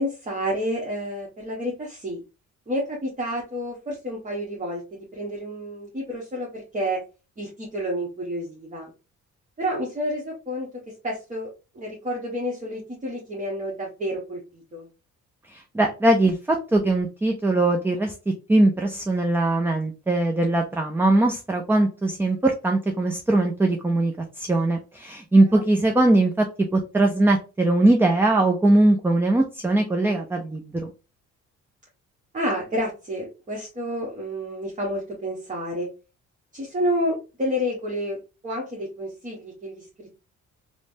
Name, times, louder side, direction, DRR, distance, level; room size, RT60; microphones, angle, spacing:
voice 1, 0.0-2.2 2.7-4.8 5.1-7.0 7.4-8.9 9.6-10.7 11.0-11.5 11.7-14.9 25.5-25.6 32.3-35.9 36.5-38.2 38.4-40.1, equal, 25° right, -3 dB, 1.0 m, -29 dB
voice 2, 15.5-18.1 18.5-26.5 26.7-30.9, right 2 dB, 10° right, 2 dB, 0.4 m, -21 dB
3.1 x 2.1 x 2.6 m, 0.31 s
cardioid pair, 90°, 30 cm